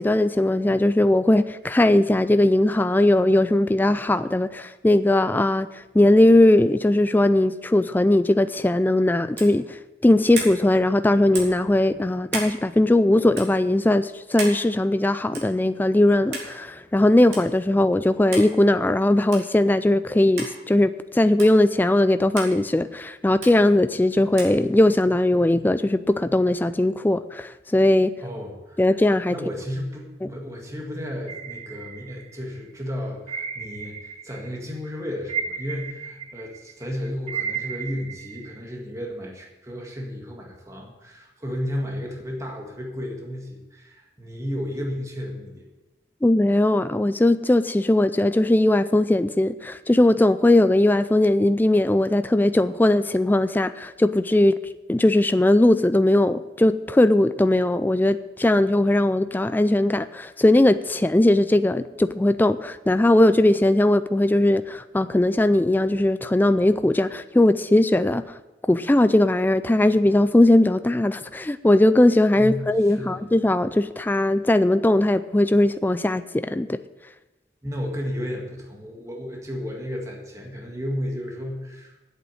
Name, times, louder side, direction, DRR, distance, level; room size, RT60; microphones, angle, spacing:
voice 1, 0.0-5.7 5.9-28.1 28.8-29.3 46.2-54.6 54.9-68.2 68.7-76.8, left 1 dB, 10° left, 12 dB, 0.3 m, -19 dB
sound 1, 9.3-9.6 10.3-10.6 11.3-11.6 12.3-12.5 13.3-13.5 14.4-14.6 15.3-15.6 16.3-16.5 17.3-17.4 18.3-18.5 19.3-19.5 20.4-20.5 21.4-21.5 22.4-22.5 23.4-23.5 24.4-24.6, right 3 dB, 65° right, 3.5 m, -32 dB
voice 2, 28.2-28.8 29.3-45.7 72.4-73.2 77.6-82.0, equal, 15° right, 0 dB, 1.8 m, -33 dB
sound 2, 31.3-32.6 33.3-34.6 34.9-38.6, right 6 dB, 35° right, 1.0 m, -34 dB
8.6 x 8.2 x 9.0 m, 1.1 s
head